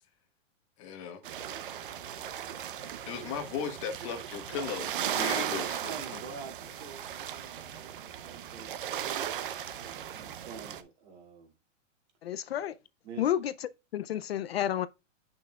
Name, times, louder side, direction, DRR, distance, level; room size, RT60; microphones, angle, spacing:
voice 1, 0.8-1.2 3.1-6.2, left 7 dB, 25° left, 1.0 m, -37 dB
sound 1, 1.2-10.8, right 10 dB, 45° right, 0.6 m, -37 dB
voice 2, 5.9-8.7 9.9-11.5 13.0-13.3, right 5 dB, 60° right, 2.3 m, -47 dB
voice 3, 12.2-12.7 13.2-14.9, left 11 dB, 55° left, 0.4 m, -31 dB
8.7 x 5.7 x 2.3 m
supercardioid pair, 180°, 39 cm